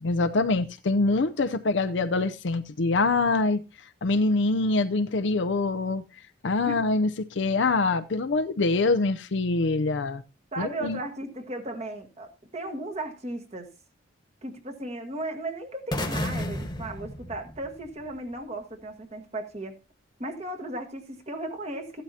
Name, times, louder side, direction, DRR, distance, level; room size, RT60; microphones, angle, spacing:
voice 1, 0.0-3.6 4.0-6.0 6.4-10.2 10.6-11.0, left 3 dB, 70° left, 0.6 m, -24 dB
voice 2, 10.5-13.7 14.4-19.8 20.2-22.0, right 1 dB, 35° right, 1.5 m, -36 dB
sound 1, 15.9-18.0, left 1 dB, 20° left, 1.3 m, -32 dB
14.5 x 11.5 x 2.8 m
head